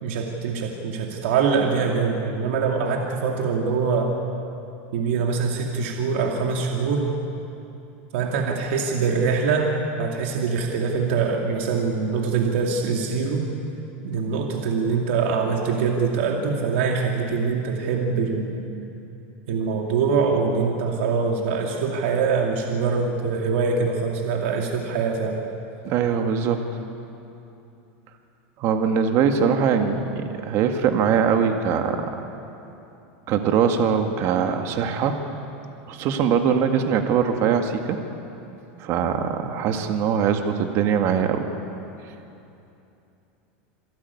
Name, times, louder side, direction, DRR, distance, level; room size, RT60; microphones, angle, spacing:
voice 1, 0.0-4.1 4.9-7.1 8.1-9.7 10.0-13.5 14.0-18.7 19.5-25.4, right 5 dB, 75° right, 1 dB, 2.4 m, -24 dB
voice 2, 25.8-26.8 28.6-32.1 33.3-35.2 35.9-38.0 38.8-41.4, right 7 dB, 45° right, 5 dB, 1.9 m, -22 dB
27.0 x 12.0 x 9.6 m, 2.8 s
supercardioid pair, 140°, 6 cm